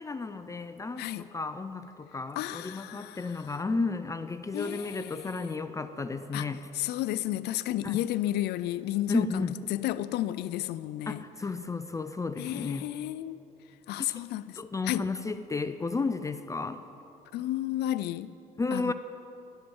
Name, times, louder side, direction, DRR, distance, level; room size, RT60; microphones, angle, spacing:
voice 1, 0.0-6.7 7.8-8.0 9.1-9.6 11.1-12.9 14.0-14.1 14.6-16.8 18.6-18.9, left 3 dB, 20° left, 0.5 m, -32 dB
voice 2, 2.4-3.6 4.5-5.5 6.3-9.4 9.7-11.2 12.4-13.4 13.9-14.6 14.8-15.1 17.3-18.3 18.7-18.9, left 14 dB, 80° left, 0.5 m, -32 dB
14.0 x 12.0 x 7.1 m
cardioid pair, 110°, 17 cm